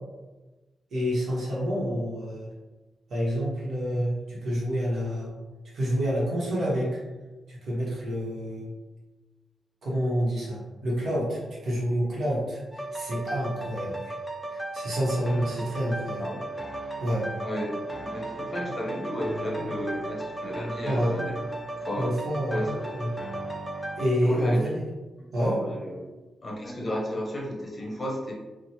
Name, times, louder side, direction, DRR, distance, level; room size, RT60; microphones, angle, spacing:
voice 1, 0.9-2.5 3.1-5.3 5.7-7.0 7.5-8.7 9.8-14.2 14.5-16.2 17.0-17.3 20.8-21.1 22.0-23.1 24.0-24.8 25.3-25.6, equal, 70° right, -5 dB, 1.0 m, -28 dB
sound 1, 12.7-24.1, right 1 dB, ahead, 0.3 m, -35 dB
voice 2, 17.4-21.5 21.8-22.2 22.5-23.0 24.2-24.6 25.4-26.1 26.4-28.3, equal, 35° left, -3 dB, 0.7 m, -33 dB
2.9 x 2.1 x 2.8 m, 1.2 s
cardioid pair, 110°, 0 cm